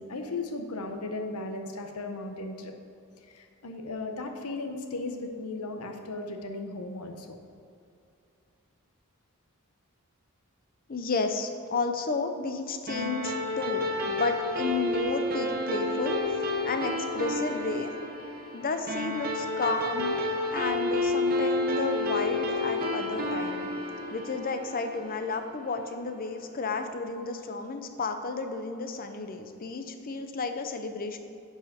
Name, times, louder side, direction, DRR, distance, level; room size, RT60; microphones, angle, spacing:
voice 1, 0.0-2.7 3.3-7.4, left 2 dB, 85° left, 5 dB, 0.8 m, -36 dB
voice 2, 10.9-16.2 16.6-17.9 18.5-20.2 20.5-23.7 24.1-31.2, left 4 dB, 40° left, 7 dB, 0.6 m, -32 dB
sound 1, 12.9-25.6, left 2 dB, 40° right, 0.9 m, -30 dB
10.5 x 4.8 x 4.3 m, 2.6 s
head